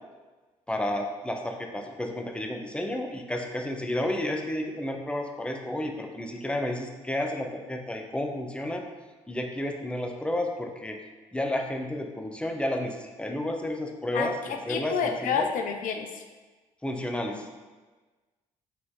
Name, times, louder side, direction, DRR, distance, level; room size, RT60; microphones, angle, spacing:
voice 1, 0.7-8.8 9.3-11.0 11.3-15.5 16.8-17.4, left 1 dB, 5° left, 3 dB, 0.9 m, -31 dB
voice 2, 14.1-16.2 17.3-17.4, left 6 dB, 70° left, 4 dB, 0.7 m, -29 dB
6.1 x 4.8 x 3.8 m, 1.3 s
supercardioid pair, 60°, 14 cm